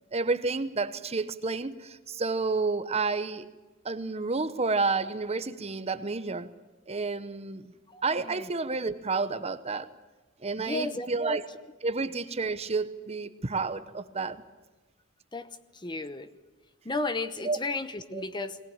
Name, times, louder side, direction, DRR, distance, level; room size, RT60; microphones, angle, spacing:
voice 1, 0.1-3.5 3.8-6.5 6.9-7.7 8.0-9.9 10.4-11.4 11.8-14.4 17.4-17.6 18.1-18.2, right 3 dB, 30° right, 0.9 m, -30 dB
voice 2, 7.9-8.5 10.6-11.4 15.3-15.5 15.7-16.3 16.8-18.6, left 3 dB, 20° left, 0.9 m, -34 dB
20.5 x 18.5 x 8.8 m
head